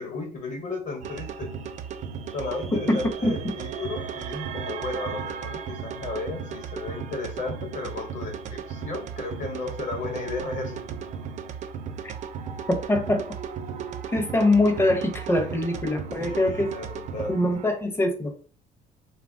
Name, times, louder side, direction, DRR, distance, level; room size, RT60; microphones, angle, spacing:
voice 1, 0.0-1.5 2.3-10.8 16.2-17.3, left 3 dB, 45° left, 3 dB, 1.0 m, -34 dB
sound 1, 1.0-17.7, right 7 dB, 45° right, 0.4 m, -35 dB
voice 2, 2.9-3.3 12.0-12.1 12.7-13.2 14.1-16.7 17.2-18.3, left 1 dB, 15° left, 5 dB, 0.6 m, -23 dB
2.9 x 2.2 x 2.5 m, 0.39 s
cardioid pair, 110°, 17 cm